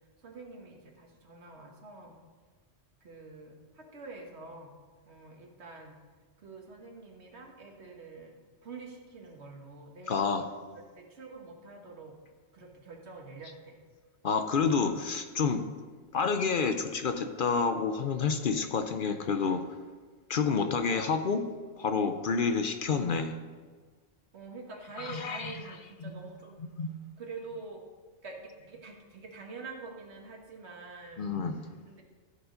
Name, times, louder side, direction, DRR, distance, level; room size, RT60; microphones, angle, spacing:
voice 1, 0.2-2.2 3.0-4.7 5.1-6.0 6.4-8.4 8.6-10.2 10.7-12.1 12.5-13.8 24.3-26.6 27.2-27.8 28.2-31.3 31.9-32.0, right 3 dB, 75° right, 2 dB, 1.6 m, -46 dB
voice 2, 10.1-10.4 14.2-15.6 16.1-19.6 20.3-21.4 21.8-23.3 25.0-25.6 26.0-26.1 26.8-26.9 31.2-31.7, left 5 dB, 55° left, 7 dB, 0.7 m, -29 dB
14.5 x 4.8 x 5.1 m, 1.5 s
omnidirectional pair, 1.1 m